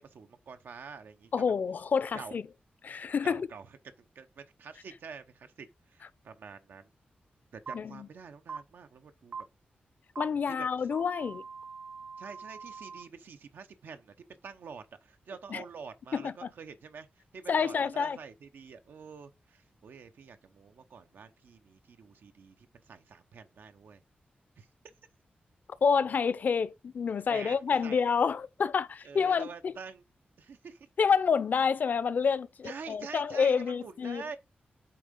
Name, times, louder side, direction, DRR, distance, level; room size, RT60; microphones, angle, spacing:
voice 1, 0.0-1.3 2.1-2.4 3.2-6.9 7.5-9.4 10.5-10.9 12.2-14.1 14.4-24.0 24.6-24.7 27.3-28.1 29.0-30.0 30.4-30.9 32.6-34.4, right 5 dB, 85° right, 0.8 m, -47 dB
voice 2, 1.3-2.4 2.8-3.5 7.7-8.1 10.2-11.4 15.5-15.6 16.1-16.3 17.5-18.2 25.8-29.7 31.0-34.2, left 6 dB, 60° left, 0.6 m, -28 dB
sound 1, 7.7-7.8 8.5-8.6 9.3-9.4 10.2-10.3 10.9-13.0, right 5 dB, 45° right, 0.8 m, -42 dB
8.6 x 3.7 x 5.3 m
wide cardioid pair, 140°, 3 cm